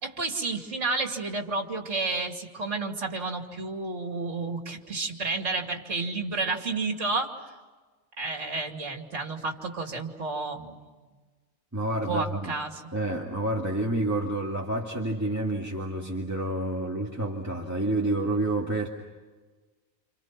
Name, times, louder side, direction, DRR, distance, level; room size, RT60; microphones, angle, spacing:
voice 1, 0.0-7.3 8.2-11.0 12.1-12.8, right 3 dB, 55° right, 3 dB, 2.9 m, -31 dB
voice 2, 11.7-12.5 12.9-18.9, right 1 dB, 10° right, -1 dB, 2.2 m, -29 dB
29.0 x 28.5 x 6.0 m, 1.3 s
omnidirectional pair, 1.5 m